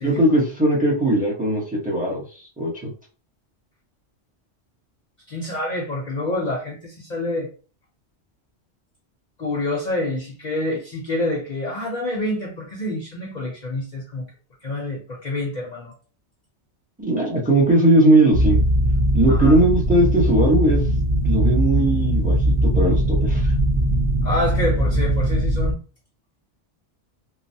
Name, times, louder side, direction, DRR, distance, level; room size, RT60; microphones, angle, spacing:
voice 1, 0.0-2.2 2.6-2.9 17.0-18.6 19.1-20.8 21.2-22.4 22.6-23.4, right 1 dB, 10° right, -3 dB, 0.8 m, -18 dB
voice 2, 5.3-7.5 9.4-14.3 14.6-15.9 19.3-19.6 24.2-25.8, left 1 dB, 45° left, -2 dB, 0.7 m, -27 dB
sound 1, 18.3-25.7, right 1 dB, 35° right, 0.5 m, -20 dB
3.2 x 2.1 x 2.7 m, 0.37 s
omnidirectional pair, 1.2 m